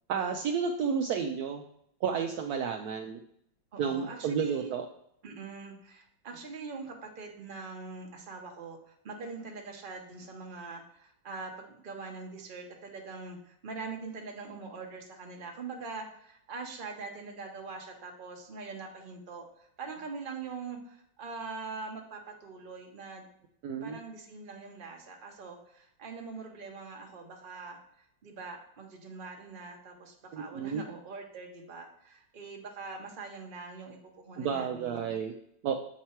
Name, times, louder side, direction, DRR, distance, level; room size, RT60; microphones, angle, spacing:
voice 1, 0.1-1.6 2.0-3.2 3.8-4.9 23.6-24.0 30.3-30.8 34.4-35.3 35.6-35.8, right 6 dB, 70° right, 3 dB, 1.0 m, -31 dB
voice 2, 3.7-4.7 5.2-23.3 23.8-35.2, right 4 dB, 35° right, 2 dB, 1.0 m, -43 dB
7.4 x 4.5 x 4.4 m, 0.72 s
omnidirectional pair, 2.0 m